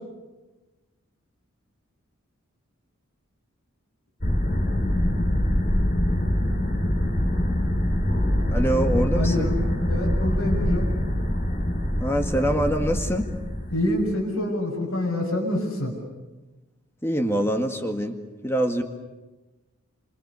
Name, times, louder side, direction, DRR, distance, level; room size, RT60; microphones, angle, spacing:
sound 1, 4.2-14.1, left 1 dB, 40° left, 3.8 m, -24 dB
voice 1, 8.5-9.5 12.0-13.3 17.0-18.2 18.4-18.8, equal, 10° left, 4 dB, 1.8 m, -24 dB
voice 2, 9.1-9.6 9.9-10.9 13.7-15.9, left 1 dB, 90° left, -3 dB, 6.8 m, -26 dB
29.0 x 26.0 x 7.0 m, 1.1 s
head